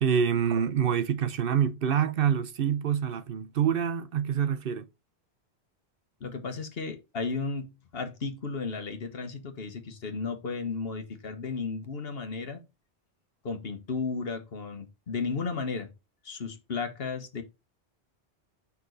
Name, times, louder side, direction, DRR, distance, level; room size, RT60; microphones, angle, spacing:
voice 1, 0.0-4.9, right 8 dB, 60° right, 0.8 m, -26 dB
voice 2, 6.2-12.6 13.4-15.9 16.2-17.4, left 4 dB, 65° left, 1.4 m, -34 dB
5.5 x 4.8 x 3.9 m
omnidirectional pair, 1.1 m